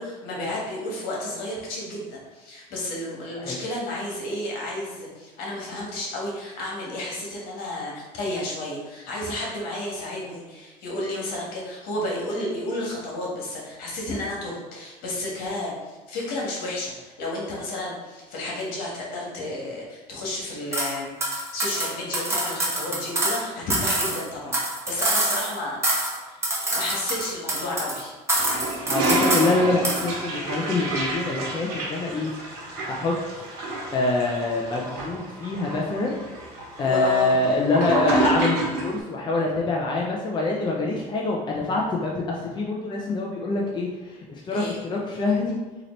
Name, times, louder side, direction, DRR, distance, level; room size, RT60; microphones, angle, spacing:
voice 1, 0.0-24.6 24.9-25.8 26.2-26.5 26.7-28.1 36.8-37.4 44.5-44.8, left 1 dB, 70° left, -3 dB, 1.5 m, -32 dB
sound 1, 20.7-20.9 21.2-23.4 23.7-25.6 25.8-26.2 26.4-28.0 28.3-29.5 29.8-30.1, right 1 dB, 15° right, 1.1 m, -25 dB
Toilet flush, 28.3-39.0, right 2 dB, 75° right, 1.2 m, -29 dB
voice 2, 28.9-32.3 32.9-33.1 33.9-36.2 36.8-45.6, left 2 dB, 30° left, -2 dB, 0.6 m, -25 dB
3.9 x 2.9 x 3.1 m, 1.2 s
supercardioid pair, 100°, 16 cm